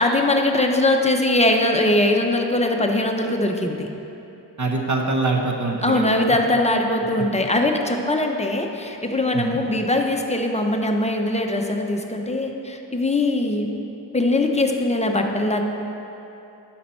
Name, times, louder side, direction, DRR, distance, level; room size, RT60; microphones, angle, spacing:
voice 1, 0.0-3.9 5.8-13.7 14.1-15.6, left 2 dB, 15° left, 2 dB, 0.7 m, -21 dB
voice 2, 4.6-6.4 9.3-9.6, right 3 dB, 40° right, 2 dB, 0.9 m, -24 dB
11.0 x 4.3 x 4.4 m, 2.9 s
wide cardioid pair, 70°, 44 cm